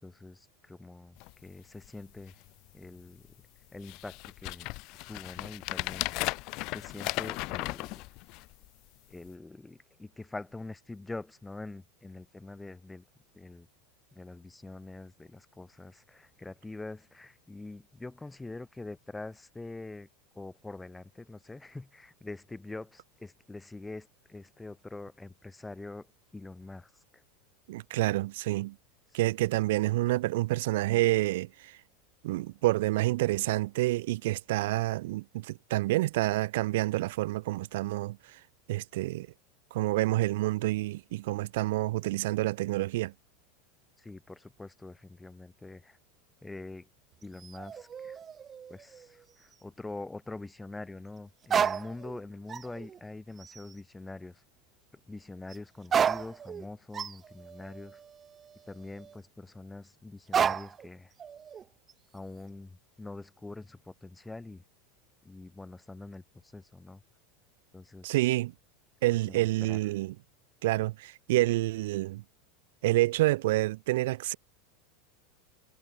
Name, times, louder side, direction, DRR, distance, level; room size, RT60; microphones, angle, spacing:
voice 1, 0.0-2.4 2.7-3.3 3.7-4.7 5.1-6.1 6.7-8.0 9.1-13.0 13.3-13.7 14.1-20.1 20.3-26.1 26.3-27.2 44.0-46.0 46.4-46.9 47.2-48.2 48.7-54.4 55.0-58.0 58.7-61.1 62.1-64.6 65.2-67.0 67.7-68.2 69.3-69.8, left 2 dB, 10° left, 4.7 m, -44 dB
sound 1, 1.2-1.3 1.8-1.9 2.2-2.7 3.3-3.4 3.8-8.7 9.3-9.4, left 24 dB, 55° left, 0.7 m, -36 dB
voice 2, 27.7-28.8 29.1-31.8 32.2-38.4 38.7-39.3 39.7-43.1 68.0-68.5 69.0-70.1 70.6-72.2 72.8-74.3, right 18 dB, 75° right, 1.9 m, -28 dB
sound 2, 47.2-49.2 49.5-49.6 51.4-52.2 52.5-53.0 53.4-53.7 55.5-55.6 55.8-59.2 60.3-60.9 61.2-61.9, right 7 dB, 25° right, 0.4 m, -32 dB
supercardioid pair, 115°, 0 cm